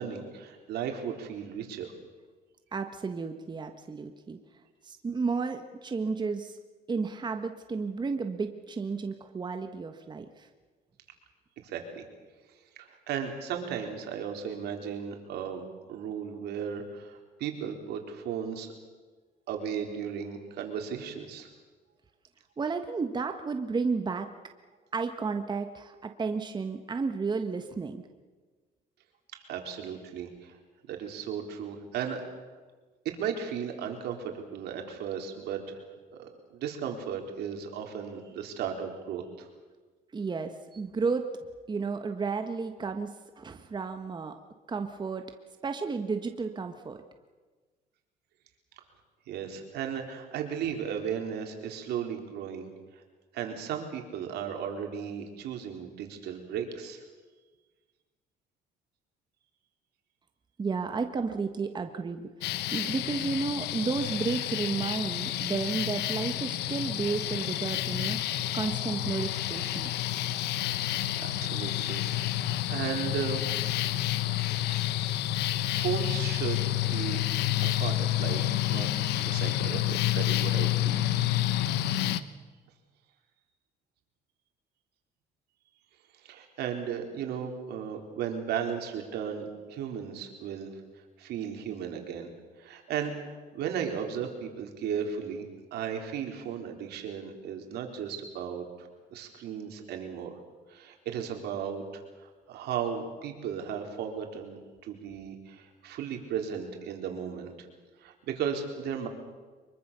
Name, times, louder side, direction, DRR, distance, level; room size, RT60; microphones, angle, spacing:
voice 1, 0.0-1.9 11.6-12.1 12.8-18.7 19.5-21.5 29.3-30.6 30.9-32.2 33.0-35.8 36.1-39.5 49.3-53.0 53.3-57.0 71.2-72.3 72.7-73.4 75.7-77.3 77.6-81.1 86.2-90.8 91.2-92.3 92.6-100.3 100.7-107.7 108.0-109.1, right 8 dB, 75° right, 3 dB, 4.1 m, -35 dB
voice 2, 2.7-4.4 4.8-6.6 6.9-10.5 22.6-24.3 24.9-28.0 40.1-41.3 41.7-44.3 44.7-45.2 45.6-47.0 60.6-62.3 62.7-68.2 68.5-69.9, right 4 dB, 25° right, 6 dB, 1.5 m, -32 dB
sound 1, 62.4-82.2, left 14 dB, 80° left, 1.1 m, -29 dB
24.5 x 23.0 x 6.9 m, 1.4 s
cardioid pair, 110°, 17 cm